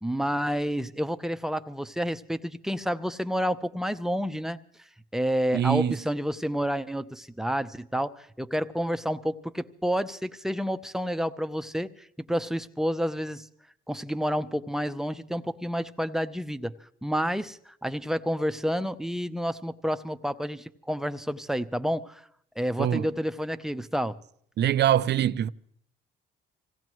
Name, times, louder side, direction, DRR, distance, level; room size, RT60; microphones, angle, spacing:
voice 1, 0.0-4.6 5.1-11.9 12.3-13.5 13.9-16.7 17.0-22.2 22.6-24.2, equal, ahead, 0.7 m, -29 dB
voice 2, 5.5-6.0 22.8-23.1 24.6-25.5, right 10 dB, 60° right, 0.5 m, -23 dB
26.0 x 17.0 x 3.1 m
cardioid pair, 90°, 20 cm